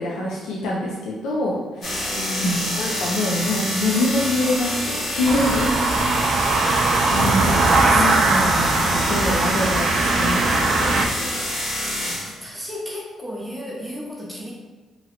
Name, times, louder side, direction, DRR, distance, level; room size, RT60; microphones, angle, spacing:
voice 1, 0.0-2.5 2.8-5.8 7.1-11.3, left 1 dB, 85° left, -3 dB, 0.4 m, -25 dB
sound 1, 1.8-12.4, left 1 dB, 50° left, 1.1 m, -27 dB
voice 2, 2.1-2.8 7.9-8.0 12.1-14.5, equal, 10° right, -3 dB, 0.5 m, -31 dB
sound 2, 5.2-11.1, right 3 dB, 60° right, 0.3 m, -20 dB
2.9 x 2.4 x 2.8 m, 1.3 s
cardioid pair, 90°, 0 cm